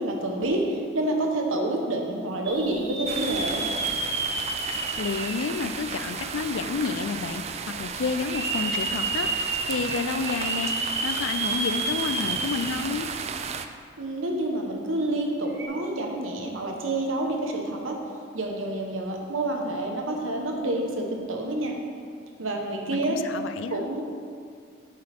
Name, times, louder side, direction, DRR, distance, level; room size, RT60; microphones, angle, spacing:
voice 1, 0.0-3.6 14.0-18.0 18.3-21.7 22.4-23.2 23.7-24.0, right 1 dB, 90° right, 1 dB, 1.1 m, -28 dB
sound 1, 2.5-6.4 6.9-7.0 8.1-13.1 13.4-13.5 15.5-15.7, right 2 dB, 60° right, 1.0 m, -31 dB
sound 2, 3.1-13.7, right 6 dB, 30° right, 0.3 m, -34 dB
voice 2, 4.6-13.1 22.9-23.9, left 5 dB, 75° left, 10 dB, 0.4 m, -30 dB
8.9 x 7.6 x 3.5 m, 2.2 s
head